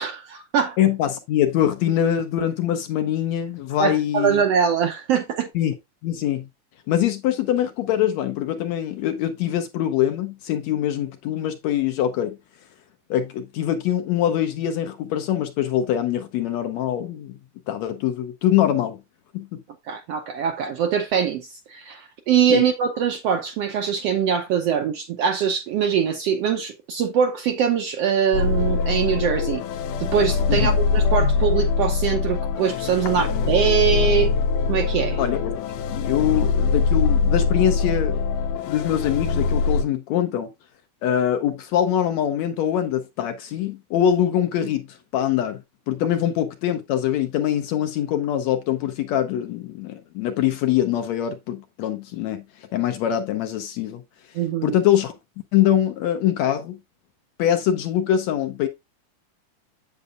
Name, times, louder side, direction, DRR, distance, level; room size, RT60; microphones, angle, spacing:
voice 1, 0.0-0.8 3.8-5.5 19.9-29.6 30.0-34.3 34.7-35.2 54.3-54.8, right 7 dB, 75° right, 1.5 m, -23 dB
voice 2, 0.8-4.4 5.5-5.7 6.0-6.5 6.9-12.4 13.1-17.4 17.7-19.0 19.3-19.6 22.5-22.6 30.5-30.8 35.2-35.5 35.9-38.2 38.7-40.5 41.0-44.9 45.1-45.6 45.9-52.4 52.7-54.0 54.6-55.1 55.5-56.8 57.4-58.7, left 10 dB, 75° left, 1.8 m, -23 dB
sound 1, 28.3-39.8, left 4 dB, 90° left, 2.4 m, -22 dB
8.2 x 7.9 x 2.5 m
omnidirectional pair, 3.6 m